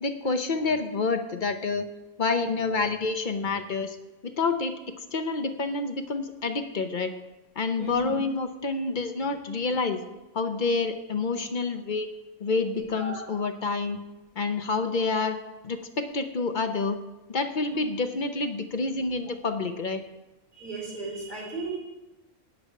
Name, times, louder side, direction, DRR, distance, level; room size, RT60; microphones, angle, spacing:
voice 1, 0.0-1.8 2.2-4.0 4.4-4.8 5.1-7.1 7.6-10.0 10.3-12.1 12.4-14.0 14.4-15.4 15.6-17.0 17.3-20.0, left 3 dB, 45° left, 7 dB, 0.8 m, -28 dB
voice 2, 12.7-13.2 20.5-21.8, right 3 dB, 35° right, -2 dB, 3.5 m, -35 dB
10.0 x 5.6 x 8.3 m, 1.0 s
omnidirectional pair, 1.3 m